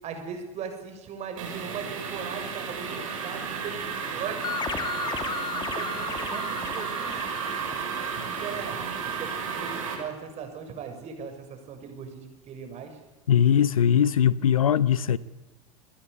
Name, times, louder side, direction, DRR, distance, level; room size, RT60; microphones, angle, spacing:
voice 1, 0.0-4.5 5.7-7.2 8.2-13.0, right 6 dB, 35° right, 7.0 m, -39 dB
sound 1, 1.4-9.9, right 6 dB, 65° right, 7.6 m, -33 dB
sound 2, 4.4-8.8, left 6 dB, 25° left, 2.8 m, -35 dB
voice 2, 13.3-15.2, left 9 dB, 70° left, 0.9 m, -20 dB
29.0 x 22.0 x 8.4 m
figure-of-eight pair, 80°, 18 cm